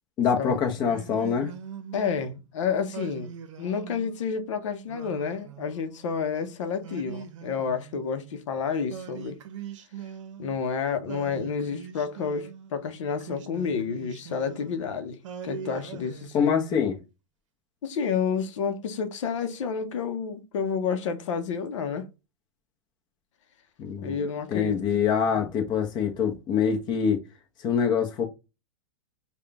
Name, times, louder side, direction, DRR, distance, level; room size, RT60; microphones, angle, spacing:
voice 1, 0.2-1.5 16.3-17.0 23.8-24.2 24.5-27.2 27.6-28.3, left 7 dB, 30° left, 0.8 m, -25 dB
Singing, 0.8-2.3 2.9-4.3 4.9-6.2 6.8-8.3 8.9-10.7 11.1-12.7 13.2-14.8 15.2-16.9, right 8 dB, 75° right, 0.7 m, -42 dB
voice 2, 1.9-3.3 3.6-9.4 10.4-16.5 17.8-22.1 24.0-24.8 25.3-25.5, left 6 dB, 75° left, 0.7 m, -30 dB
3.7 x 2.3 x 3.4 m
supercardioid pair, 145°, 16 cm